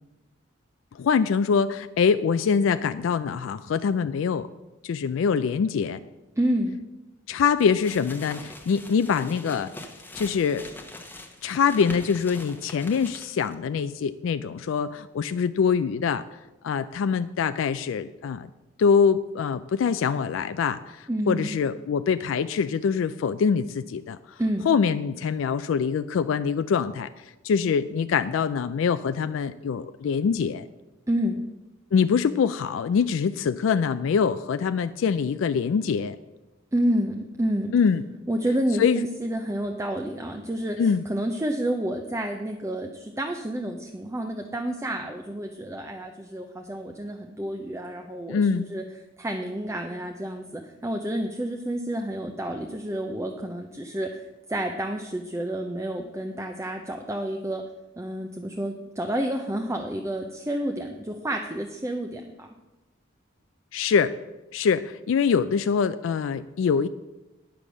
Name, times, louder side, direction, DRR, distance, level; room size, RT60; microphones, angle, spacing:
voice 1, 0.9-4.5 4.8-6.0 7.3-9.7 10.1-10.6 11.4-16.2 16.6-18.5 18.8-24.4 24.7-30.6 31.9-36.2 37.7-38.0 38.8-39.1 40.8-41.0 48.3-48.7 63.7-64.1 64.5-66.9, left 6 dB, 75° left, 12 dB, 0.3 m, -24 dB
voice 2, 6.4-6.8 21.1-21.5 24.4-24.7 31.1-31.4 36.7-37.7 38.3-48.8 49.2-57.6 58.0-62.5, right 1 dB, 15° right, 3 dB, 0.6 m, -29 dB
sound 1, 7.6-13.5, left 2 dB, 10° left, 1.1 m, -43 dB
9.7 x 6.9 x 6.1 m, 1.0 s
head